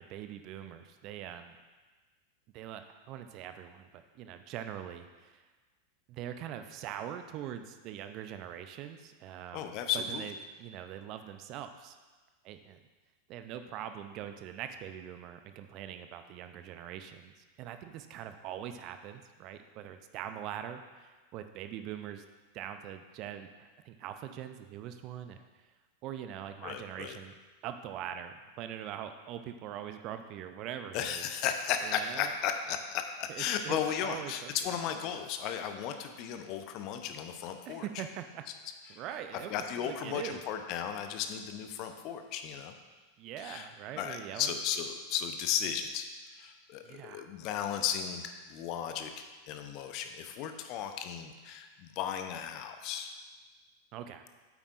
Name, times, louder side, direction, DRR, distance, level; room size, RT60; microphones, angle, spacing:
voice 1, 0.0-1.6 2.5-5.4 6.1-12.0 12.4-12.8 13.3-22.2 22.5-25.6 26.0-27.3 27.6-31.2 31.8-32.3 33.3-34.5 37.7-38.4 38.9-40.4 43.2-44.5 46.8-47.3 53.9-54.2, right 10 dB, 45° right, 8 dB, 0.5 m, -43 dB
voice 2, 9.5-10.2 26.6-27.2 30.9-38.0 38.9-39.0 39.5-42.8 43.4-43.7 44.0-53.1, left 8 dB, 45° left, 6 dB, 0.7 m, -35 dB
8.7 x 8.2 x 2.5 m, 1.3 s
figure-of-eight pair, 90°, 0 cm